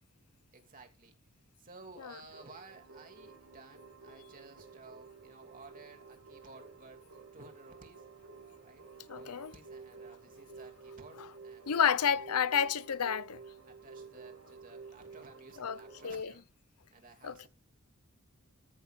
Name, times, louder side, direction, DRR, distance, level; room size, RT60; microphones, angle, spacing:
voice 1, 0.1-1.1 1.6-7.0 7.3-8.0 8.6-8.9 9.2-12.0 13.7-16.4 16.9-17.5, right 3 dB, 40° right, 2.9 m, -55 dB
sound 1, 2.3-16.1, right 4 dB, 70° right, 4.3 m, -52 dB
voice 2, 9.1-9.5 11.7-13.4 15.6-15.8 16.0-16.3 17.2-17.5, left 7 dB, 85° left, 0.7 m, -30 dB
14.0 x 6.3 x 3.8 m
head